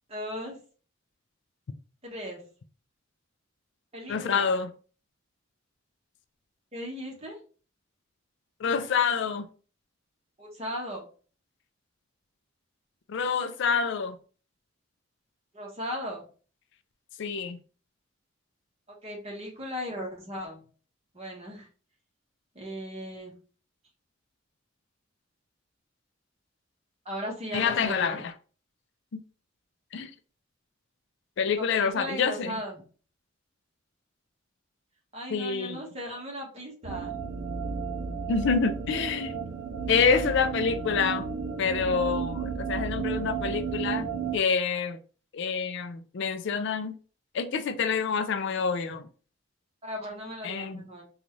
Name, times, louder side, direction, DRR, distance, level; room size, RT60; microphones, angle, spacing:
voice 1, 0.1-0.6 2.0-2.4 3.9-4.5 6.7-7.4 10.4-11.0 15.5-16.3 19.0-20.6 21.1-21.7 22.5-23.3 27.0-28.2 31.6-32.8 35.1-37.2 49.8-51.0, equal, 35° right, 1.2 m, -37 dB
voice 2, 4.1-4.7 8.6-9.5 13.1-14.2 17.2-17.6 27.5-28.3 29.9-30.1 31.4-32.6 35.3-35.8 38.3-39.3 39.9-41.3 41.6-45.0 45.3-46.9 47.3-49.1 50.4-50.8, left 5 dB, 65° left, 0.4 m, -27 dB
sound 1, 36.8-44.4, right 6 dB, 55° right, 0.5 m, -33 dB
3.9 x 2.4 x 3.1 m
head